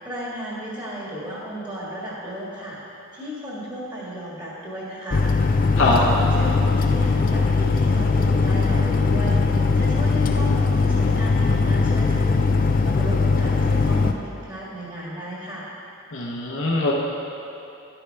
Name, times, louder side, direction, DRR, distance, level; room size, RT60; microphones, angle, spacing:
voice 1, 0.0-5.3 5.7-9.4 9.7-15.7, equal, 20° right, -6 dB, 1.7 m, -34 dB
sound 1, 5.1-14.1, left 4 dB, 40° left, 0.4 m, -20 dB
voice 2, 16.1-16.9, left 3 dB, 65° left, -4 dB, 0.9 m, -22 dB
11.5 x 8.6 x 3.4 m, 2.9 s
head